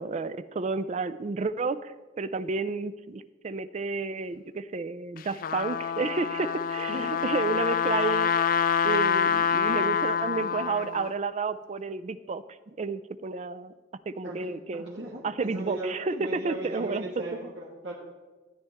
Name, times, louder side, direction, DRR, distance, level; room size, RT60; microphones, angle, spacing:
voice 1, 0.0-8.3 8.8-13.7 14.1-17.1, right 4 dB, 40° right, 13 dB, 0.4 m, -31 dB
Trumpet, 5.2-11.1, left 7 dB, 50° left, 0.3 m, -26 dB
voice 2, 14.2-17.9, right 1 dB, 80° right, -5 dB, 1.7 m, -37 dB
13.0 x 9.3 x 3.5 m, 1.3 s
head